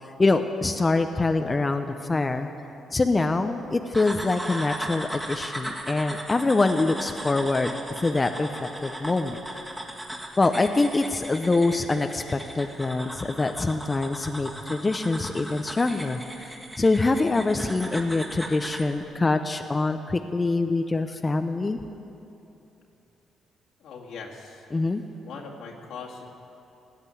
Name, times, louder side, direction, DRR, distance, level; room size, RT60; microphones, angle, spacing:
voice 1, 0.2-2.5 2.9-7.7 8.0-9.4 10.4-16.5 16.8-21.8 24.7-25.0, left 3 dB, 25° left, 7 dB, 0.6 m, -24 dB
sound 1, 3.9-18.9, right 1 dB, 10° right, 1.9 m, -37 dB
voice 2, 23.8-24.7 25.2-26.3, left 5 dB, 80° left, -2 dB, 2.2 m, -40 dB
16.5 x 8.3 x 8.3 m, 2.9 s
cardioid pair, 90°, 0 cm